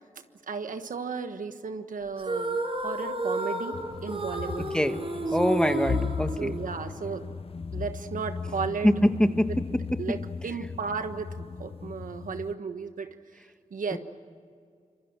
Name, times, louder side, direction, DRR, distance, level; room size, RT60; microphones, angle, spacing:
voice 1, 0.5-2.6 2.8-3.8 4.0-4.7 5.4-5.8 6.2-7.3 7.7-8.9 10.0-13.1 13.7-14.0, right 5 dB, 85° right, 8 dB, 1.4 m, -34 dB
sound 1, 2.2-7.0, right 2 dB, 45° right, 6.3 m, -32 dB
sound 2, 3.7-12.5, left 5 dB, 45° left, 0.7 m, -36 dB
voice 2, 5.3-6.6 8.8-9.5 13.9-14.0, equal, 5° left, 8 dB, 1.6 m, -24 dB
26.0 x 23.0 x 7.5 m, 2.1 s
cardioid pair, 60°, 13 cm